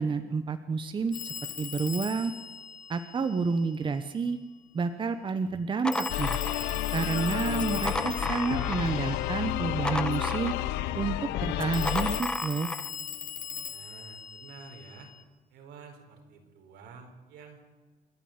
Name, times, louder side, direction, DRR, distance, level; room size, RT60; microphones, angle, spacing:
voice 1, 0.0-2.3 2.9-4.4 4.7-6.4 6.9-10.5 10.9-12.7, right 5 dB, 30° right, 9 dB, 1.0 m, -30 dB
Telephone, 1.1-3.8 5.9-9.6 11.7-15.2, left 7 dB, 50° left, 2.7 m, -40 dB
sound 1, 5.5-7.0 7.5-9.0 9.3-10.9 11.5-12.9, left 1 dB, 5° left, 0.9 m, -34 dB
sound 2, 6.1-12.2, left 14 dB, 90° left, 0.8 m, -31 dB
voice 2, 13.6-15.1 15.5-17.6, right 5 dB, 80° right, 3 dB, 4.8 m, -50 dB
28.0 x 11.0 x 8.9 m, 1.3 s
cardioid pair, 110°, 17 cm